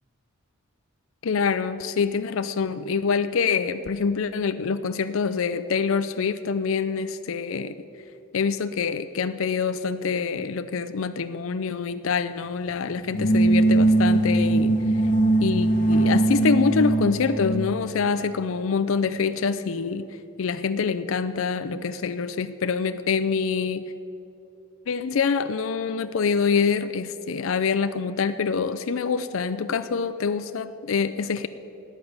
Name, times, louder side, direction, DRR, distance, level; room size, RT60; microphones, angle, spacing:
voice 1, 1.2-7.8 8.3-14.8 15.4-20.1 20.4-23.9 24.9-31.5, left 5 dB, 65° left, 12 dB, 0.5 m, -25 dB
sound 1, 13.0-17.8, right 2 dB, 40° left, 1.5 m, -20 dB
12.0 x 9.1 x 9.4 m, 2.9 s
head